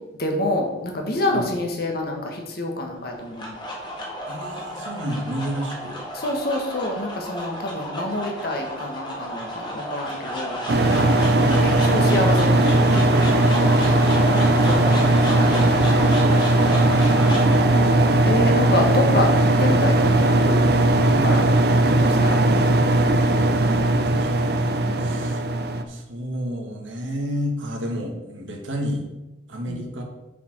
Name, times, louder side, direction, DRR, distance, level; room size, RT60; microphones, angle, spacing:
voice 1, 0.2-3.6 6.1-10.6 11.6-14.0 14.6-15.8 18.2-19.3 19.6-20.7 21.0-21.4 22.0-22.3 24.9-25.1 29.7-29.8, left 1 dB, 50° left, 2 dB, 1.5 m, -27 dB
sound 1, 3.0-21.4, equal, 25° left, 1.8 m, -31 dB
voice 2, 4.3-6.0 22.9-25.4 25.9-29.1 29.5-30.0, equal, 80° right, 1 dB, 1.7 m, -32 dB
sound 2, 10.7-25.8, right 1 dB, 55° right, 0.6 m, -18 dB
6.8 x 5.0 x 6.0 m, 1.0 s
head